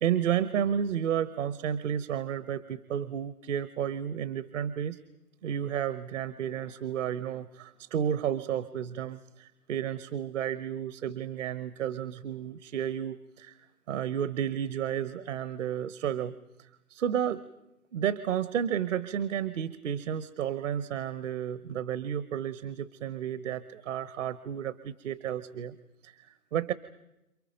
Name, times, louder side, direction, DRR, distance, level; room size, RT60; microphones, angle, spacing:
voice 1, 0.0-5.0 5.4-13.6 13.9-16.3 16.6-17.4 17.9-25.8 26.0-26.7, right 9 dB, 55° right, 15 dB, 1.1 m, -32 dB
30.0 x 28.5 x 5.2 m, 0.90 s
figure-of-eight pair, 130°, 44 cm